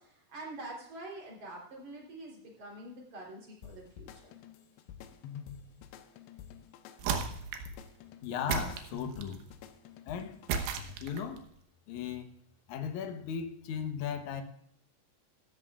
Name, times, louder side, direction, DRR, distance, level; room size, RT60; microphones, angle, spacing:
voice 1, 0.0-4.3, right 2 dB, 45° right, -2 dB, 4.5 m, -46 dB
sound 1, 3.6-11.2, left 8 dB, 90° left, 3.0 m, -49 dB
sound 2, 7.0-7.8 8.5-9.4 10.5-11.4, right 6 dB, 85° right, 3.3 m, -34 dB
voice 2, 8.2-9.4 10.0-10.4 11.0-11.4 11.9-12.3 12.7-14.4, left 7 dB, 75° left, 6 dB, 1.8 m, -36 dB
16.0 x 13.5 x 2.4 m, 0.70 s
omnidirectional pair, 4.8 m